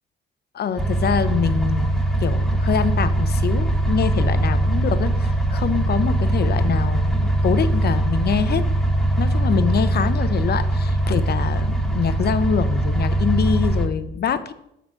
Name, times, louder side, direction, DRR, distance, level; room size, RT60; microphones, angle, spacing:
voice 1, 0.5-8.6 9.2-14.5, left 7 dB, 55° left, 11 dB, 0.8 m, -24 dB
sound 1, 0.8-13.9, right 1 dB, ahead, 1.1 m, -21 dB
10.5 x 4.0 x 6.4 m, 0.79 s
cardioid pair, 90°, 20 cm